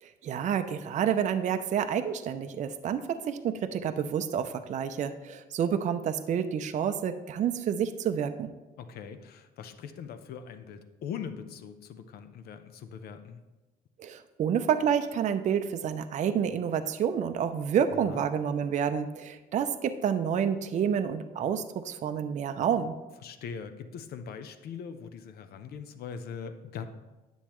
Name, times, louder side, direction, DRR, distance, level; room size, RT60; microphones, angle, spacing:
voice 1, 0.0-8.5 14.0-23.0, right 8 dB, 45° right, 9 dB, 0.5 m, -29 dB
voice 2, 8.8-13.4 17.9-18.2 23.2-26.9, left 7 dB, 65° left, 9 dB, 0.7 m, -41 dB
9.9 x 7.1 x 3.0 m, 1.1 s
cardioid pair, 110°, 17 cm